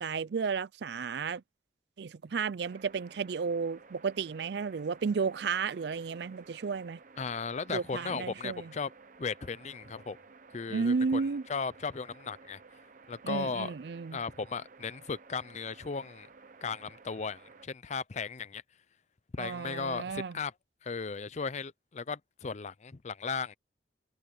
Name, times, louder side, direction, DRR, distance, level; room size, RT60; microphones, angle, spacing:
voice 1, 0.0-1.4 2.0-7.0 7.7-8.7 10.7-11.4 13.2-14.2 19.4-20.3, right 5 dB, 60° right, 0.4 m, -33 dB
sound 1, 2.6-17.7, right 4 dB, 45° right, 1.0 m, -55 dB
voice 2, 7.2-8.9 9.2-10.2 10.5-12.6 13.1-13.7 14.1-16.3 16.6-18.6 19.3-20.5 20.8-23.5, left 5 dB, 40° left, 0.5 m, -36 dB
head